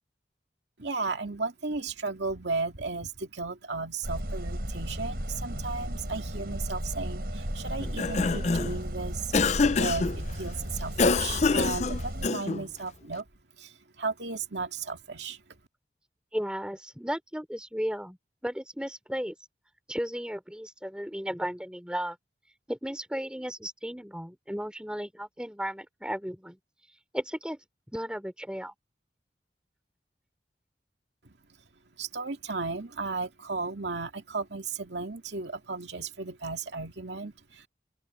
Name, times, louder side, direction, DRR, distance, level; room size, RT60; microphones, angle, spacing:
voice 1, 0.8-9.3 9.8-13.3 13.6-15.4 31.2-31.3 32.0-37.7, right 3 dB, 80° right, 2.4 m, -35 dB
sound 1, 4.0-12.3, equal, 60° right, 5.7 m, -35 dB
Cough, 7.8-8.8 9.3-10.2 11.0-12.7, left 4 dB, 40° left, 0.5 m, -25 dB
voice 2, 16.3-18.2 18.4-19.3 19.9-22.2 22.7-26.6 27.1-27.6 27.9-28.7, equal, 5° right, 3.2 m, -34 dB
open air
head